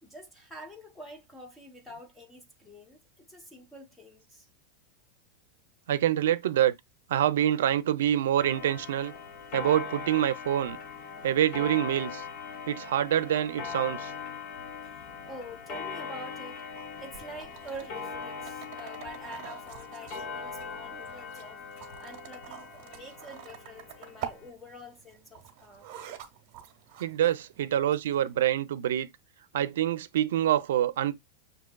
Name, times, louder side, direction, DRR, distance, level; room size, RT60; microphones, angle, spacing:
voice 1, 0.0-4.5 14.8-16.7 17.0-21.6 22.0-25.9, equal, 5° left, 0.8 m, -46 dB
voice 2, 5.9-6.7 7.1-9.1 9.5-10.8 11.2-12.2 12.7-14.1 27.0-29.1 29.5-31.2, right 11 dB, 85° right, 0.5 m, -26 dB
Clock, 8.4-24.5, left 5 dB, 35° left, 0.7 m, -41 dB
sound 1, 16.8-28.4, right 10 dB, 45° right, 0.9 m, -47 dB
6.3 x 2.7 x 2.2 m
supercardioid pair, 165°, 0 cm